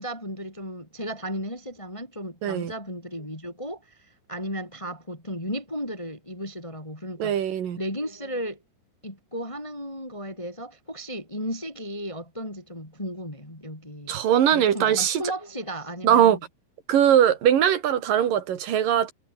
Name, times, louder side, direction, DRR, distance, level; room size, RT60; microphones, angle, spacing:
voice 1, 0.0-7.5 7.8-8.6 9.0-14.2 14.5-16.4, equal, 5° left, 5.1 m, -35 dB
voice 2, 2.4-2.7 7.2-7.8 14.1-15.2 16.0-16.4 16.9-19.1, right 9 dB, 55° right, 3.8 m, -21 dB
omnidirectional pair, 5.2 m